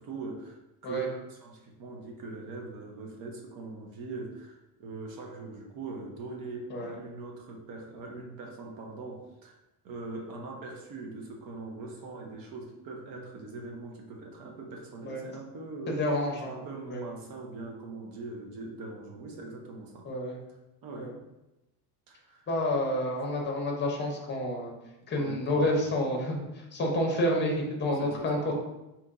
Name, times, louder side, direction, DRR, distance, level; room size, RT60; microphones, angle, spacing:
voice 1, 0.0-9.6 9.8-15.9 16.4-20.1 20.8-21.2 22.1-22.5 25.1-25.8 28.0-28.5, right 3 dB, 45° right, 1 dB, 0.9 m, -42 dB
voice 2, 15.9-16.5 16.9-17.0 20.0-20.4 21.0-21.1 22.5-24.7 25.1-28.5, left 1 dB, 25° left, 0 dB, 0.8 m, -29 dB
4.0 x 3.0 x 3.8 m, 0.97 s
cardioid pair, 170°, 46 cm